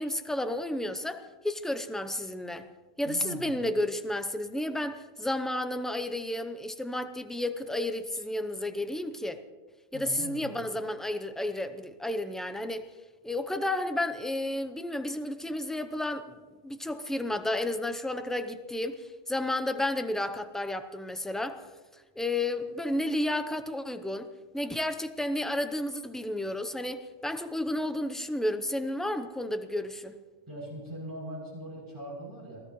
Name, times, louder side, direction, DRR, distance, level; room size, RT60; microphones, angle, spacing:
voice 1, 0.0-2.7 3.0-9.4 9.9-12.9 13.2-16.4 16.6-21.6 22.2-24.3 24.5-30.2, left 1 dB, ahead, 8 dB, 0.4 m, -32 dB
voice 2, 3.1-3.5 9.9-10.5 30.5-32.6, right 1 dB, 15° right, -5 dB, 7.4 m, -41 dB
27.0 x 17.0 x 3.2 m, 1.3 s
omnidirectional pair, 1.4 m